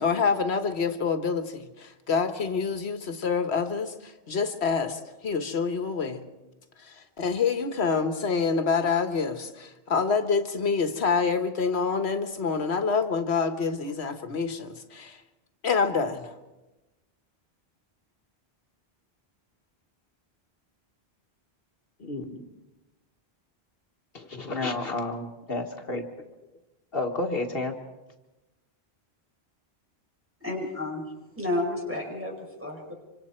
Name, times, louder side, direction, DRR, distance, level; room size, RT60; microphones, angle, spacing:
voice 1, 0.0-6.2 6.8-15.2 15.6-16.3, left 5 dB, 80° left, 8 dB, 1.5 m, -27 dB
voice 2, 22.0-22.5 24.1-26.1 26.9-27.8, left 2 dB, 65° left, 3 dB, 1.7 m, -31 dB
voice 3, 30.4-31.0 31.4-32.9, left 2 dB, 10° right, -1 dB, 5.7 m, -31 dB
26.0 x 25.5 x 4.4 m, 1.1 s
omnidirectional pair, 1.1 m